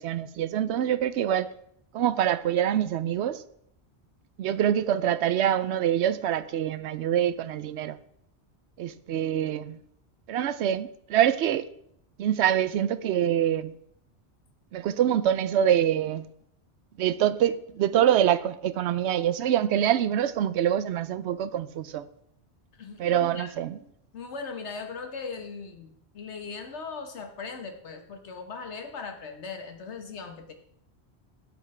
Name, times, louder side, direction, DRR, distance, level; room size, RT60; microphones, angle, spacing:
voice 1, 0.0-1.5 1.9-3.4 4.4-8.0 8.8-9.8 10.3-11.7 12.2-13.7 14.7-16.3 17.0-22.1 23.0-23.8, right 10 dB, 80° right, 0.9 m, -25 dB
voice 2, 22.7-23.5 24.1-30.5, left 5 dB, 90° left, 1.5 m, -39 dB
12.0 x 8.0 x 3.3 m
omnidirectional pair, 1.1 m